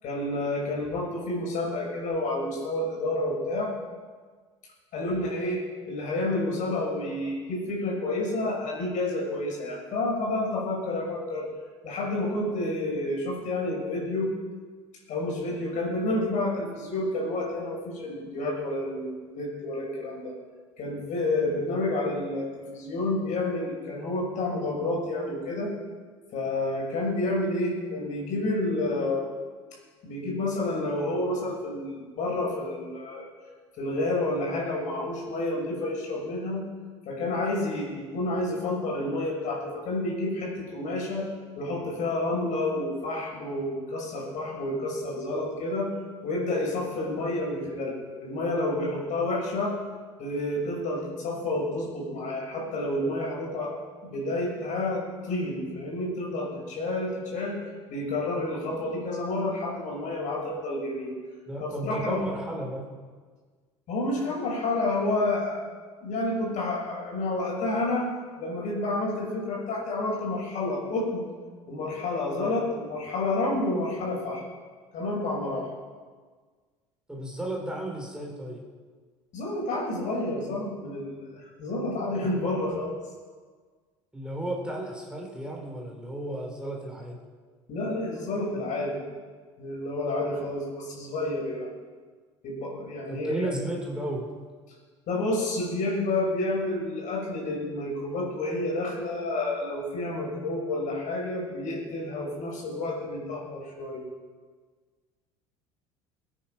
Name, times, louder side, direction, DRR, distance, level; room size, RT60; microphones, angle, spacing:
voice 1, 0.0-3.8 4.9-11.5 11.8-14.3 15.1-20.3 20.8-25.7 26.3-29.3 30.0-33.3 33.8-36.6 37.1-41.3 41.6-45.9 46.2-47.9 48.2-49.8 50.2-53.7 54.0-57.6 57.9-61.1 61.6-62.2 63.9-65.6 66.0-68.1 68.4-71.3 71.7-74.4 74.9-75.7 79.3-82.9 87.7-89.1 89.6-91.7 92.4-93.5 95.1-104.0, left 2 dB, 55° left, -2 dB, 6.0 m, -29 dB
voice 2, 61.5-62.8 77.1-78.6 84.1-87.2 93.1-94.3, right 1 dB, 5° right, -1 dB, 4.2 m, -33 dB
21.0 x 9.2 x 5.9 m, 1.5 s
hypercardioid pair, 65°, 15 cm